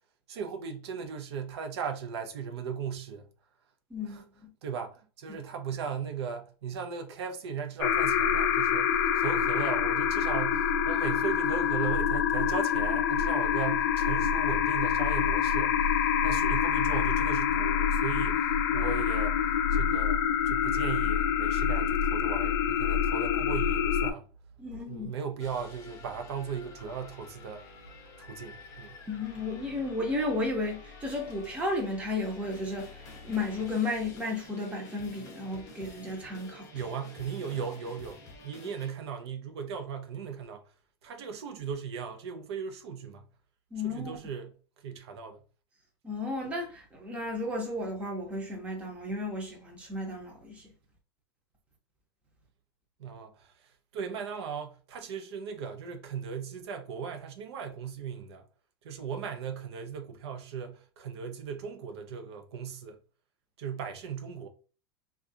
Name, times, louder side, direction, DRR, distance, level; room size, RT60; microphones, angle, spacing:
voice 1, 0.3-3.3 4.0-4.2 4.6-24.3 24.9-27.6 28.2-29.0 36.7-40.6 41.0-43.3 43.8-44.5 44.8-45.4 53.0-58.5 58.8-63.0 63.6-64.5, right 6 dB, 90° right, 0.7 m, -37 dB
voice 2, 3.9-4.2 24.6-25.1 29.1-32.9 33.2-36.7 43.7-44.2 46.0-50.7, left 2 dB, 10° right, 0.7 m, -33 dB
sound 1, 7.8-24.1, left 8 dB, 50° left, 0.4 m, -26 dB
sound 2, 25.4-38.9, left 3 dB, 25° left, 0.7 m, -49 dB
3.6 x 2.4 x 2.6 m
supercardioid pair, 165°, 13 cm